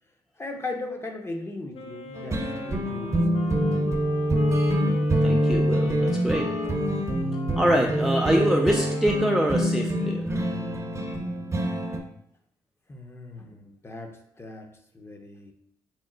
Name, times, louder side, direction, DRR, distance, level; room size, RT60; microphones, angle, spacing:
voice 1, 0.4-3.2 12.9-15.5, left 2 dB, 20° left, 4 dB, 0.7 m, -38 dB
Wind instrument woodwind instrument, 1.7-9.9, left 5 dB, 60° left, 0.6 m, -40 dB
sound 1, 2.1-12.0, equal, 25° right, 0.7 m, -25 dB
voice 2, 4.7-6.5 7.6-10.5, equal, ahead, 0 dB, 0.4 m, -25 dB
4.2 x 2.0 x 3.8 m, 0.71 s
supercardioid pair, 70°, 11 cm